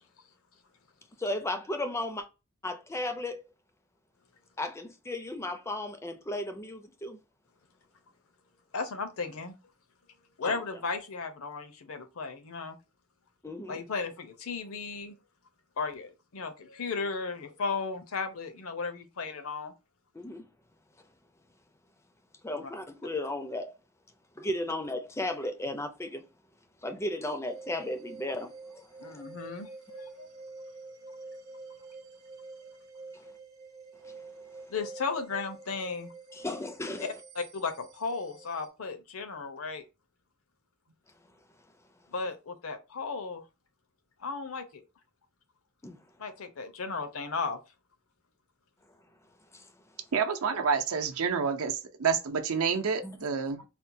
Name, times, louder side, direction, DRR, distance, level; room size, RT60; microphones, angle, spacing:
voice 1, 1.2-2.3 2.6-3.4 4.6-7.2 10.4-10.6 13.4-13.8 20.1-20.4 22.4-23.7 24.4-26.2 26.8-29.2 34.0-34.2 36.3-37.1 45.8-46.0 49.5-49.7 53.0-53.2, left 1 dB, 10° left, 0.4 m, -35 dB
voice 2, 8.7-9.5 10.4-12.8 13.7-15.1 15.8-19.7 22.5-22.7 29.0-30.3 32.6-32.7 34.7-36.1 37.0-37.1 37.4-39.8 42.1-43.4 44.2-44.8 46.2-47.6, left 4 dB, 70° left, 0.7 m, -35 dB
sound 1, 27.4-38.7, right 3 dB, 45° right, 0.8 m, -48 dB
voice 3, 50.1-53.6, right 6 dB, 75° right, 0.6 m, -28 dB
4.3 x 2.2 x 2.6 m
head